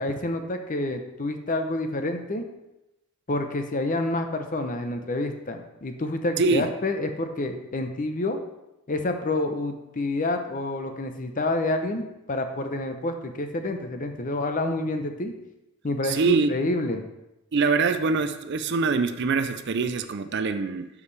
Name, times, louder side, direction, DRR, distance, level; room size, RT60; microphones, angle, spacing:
voice 1, 0.0-2.4 3.3-8.4 8.9-15.3 15.8-17.0, left 2 dB, 35° left, 6 dB, 0.7 m, -28 dB
voice 2, 6.4-6.7 16.0-16.5 17.5-20.9, right 4 dB, 50° right, 10 dB, 0.5 m, -24 dB
12.5 x 4.8 x 3.3 m, 0.92 s
head